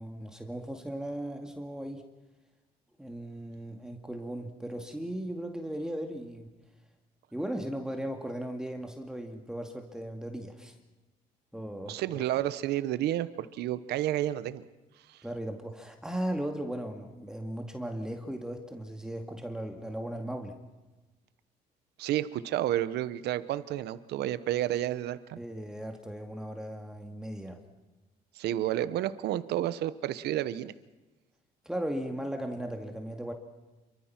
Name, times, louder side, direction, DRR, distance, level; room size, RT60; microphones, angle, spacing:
voice 1, 0.0-2.1 3.0-6.5 7.3-10.7 11.5-12.0 15.2-20.6 25.4-27.6 31.7-33.3, right 1 dB, 5° right, 4 dB, 2.1 m, -37 dB
voice 2, 11.9-14.6 15.1-15.2 22.0-25.4 28.4-30.7, right 13 dB, 75° right, 14 dB, 1.0 m, -31 dB
28.5 x 24.0 x 6.0 m, 1.1 s
cardioid pair, 110°, 17 cm